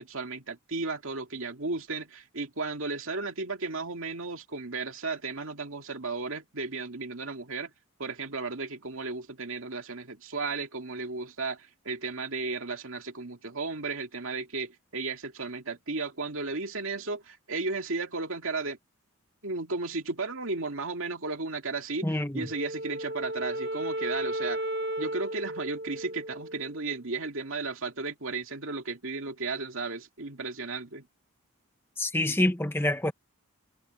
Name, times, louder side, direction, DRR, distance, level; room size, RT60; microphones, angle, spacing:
voice 1, 0.0-7.7 8.0-18.8 19.4-22.1 22.3-24.6 25.0-31.1, right 3 dB, 65° right, 2.3 m, -34 dB
voice 2, 22.0-22.5 32.0-33.1, left 1 dB, 10° left, 1.0 m, -27 dB
Wind instrument woodwind instrument, 22.5-26.9, right 1 dB, 45° right, 1.2 m, -34 dB
head